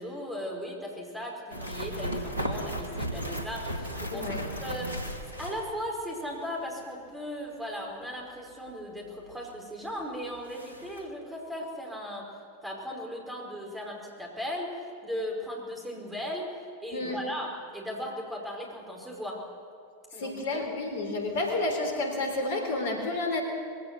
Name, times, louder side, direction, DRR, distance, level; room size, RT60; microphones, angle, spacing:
voice 1, 0.0-12.3 12.6-16.5 16.8-19.4 20.1-20.7, equal, 5° right, -1 dB, 5.1 m, -37 dB
sound 1, 1.5-6.2 6.4-6.5 9.5-9.6 10.0-10.1 10.4-11.0, equal, 80° right, 2.4 m, -35 dB
voice 2, 4.1-4.4 16.9-17.2 20.2-23.4, left 2 dB, 60° left, 3 dB, 3.8 m, -30 dB
22.5 x 16.0 x 7.5 m, 2.4 s
figure-of-eight pair, 90°, 0 cm